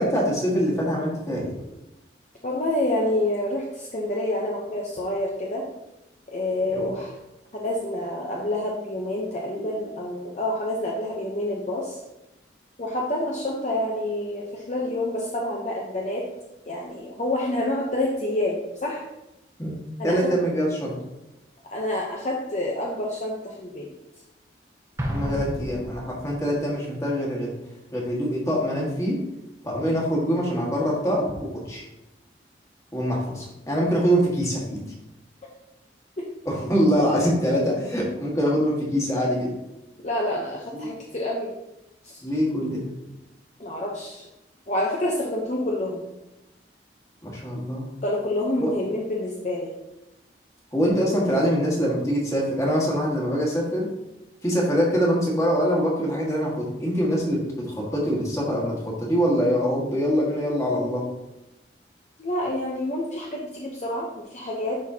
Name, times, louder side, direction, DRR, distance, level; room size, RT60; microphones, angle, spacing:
voice 1, 0.0-1.6 6.7-6.9 19.6-19.8 20.0-21.0 25.0-27.5 27.9-29.2 29.6-31.8 32.9-34.8 36.4-39.5 40.7-40.9 42.2-42.9 47.2-47.9 48.6-48.7 50.7-53.9 54.4-61.1, equal, 20° left, -3 dB, 1.7 m, -24 dB
voice 2, 2.4-5.7 6.3-7.1 7.5-12.0 12.8-16.3 16.7-19.0 20.0-20.3 21.6-23.9 36.2-36.3 40.0-41.5 42.0-42.2 43.6-44.3 44.7-46.1 48.0-49.7 62.2-64.8, left 1 dB, 40° left, -2 dB, 0.7 m, -28 dB
Explosion, 25.0-26.6, equal, 15° right, 0.9 m, -32 dB
11.0 x 4.2 x 2.8 m, 0.95 s
head